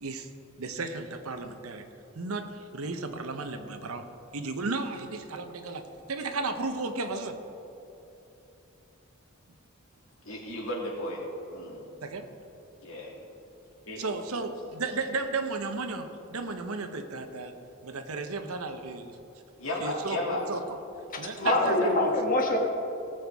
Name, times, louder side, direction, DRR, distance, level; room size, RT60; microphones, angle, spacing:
voice 1, 0.6-1.8 2.1-4.0 4.3-7.4 12.0-12.3 14.0-17.5 17.8-19.2 19.8-20.8 21.2-21.9, right 3 dB, 85° right, 7 dB, 0.9 m, -34 dB
voice 2, 10.2-11.2 11.5-11.9 12.8-13.1 13.9-14.0 19.6-20.4 21.4-21.9, left 1 dB, 70° left, -4 dB, 2.6 m, -33 dB
voice 3, 21.1-22.6, left 1 dB, 40° left, 2 dB, 1.4 m, -25 dB
17.5 x 7.9 x 3.5 m, 2.9 s
head